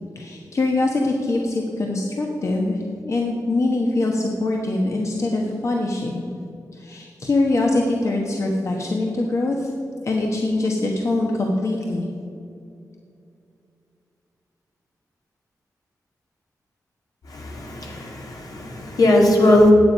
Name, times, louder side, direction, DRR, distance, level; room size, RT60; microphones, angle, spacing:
voice 1, 0.1-6.3 6.7-9.7 10.0-12.1, left 2 dB, 50° left, 0 dB, 1.2 m, -23 dB
voice 2, 17.3-19.7, left 1 dB, 70° left, 0 dB, 2.1 m, -18 dB
10.0 x 8.1 x 5.5 m, 2.5 s
cardioid pair, 70°, 7 cm